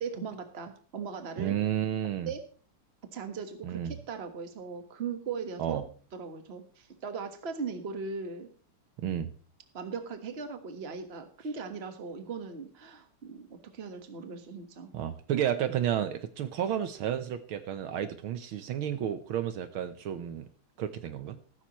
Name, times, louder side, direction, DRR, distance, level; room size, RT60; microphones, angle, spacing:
voice 1, 0.0-1.6 2.3-2.4 3.1-5.8 6.1-8.5 9.7-14.9, right 5 dB, 35° right, 7 dB, 1.5 m, -38 dB
voice 2, 1.4-2.3 3.6-3.9 5.6-5.8 9.0-9.3 14.9-20.5 20.8-21.4, right 10 dB, 75° right, 10 dB, 1.7 m, -31 dB
14.5 x 13.0 x 3.1 m, 0.39 s
omnidirectional pair, 2.4 m